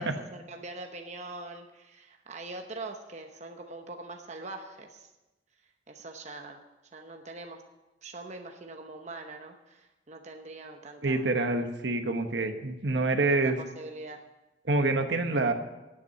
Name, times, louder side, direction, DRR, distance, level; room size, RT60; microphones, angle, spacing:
voice 1, 0.0-5.1 5.9-6.6 6.9-7.6 8.0-11.3 13.3-14.2, right 2 dB, 40° right, 4 dB, 0.9 m, -43 dB
voice 2, 11.0-13.6 14.7-15.5, right 2 dB, 65° right, 6 dB, 1.2 m, -26 dB
9.4 x 8.5 x 9.6 m, 1.0 s
head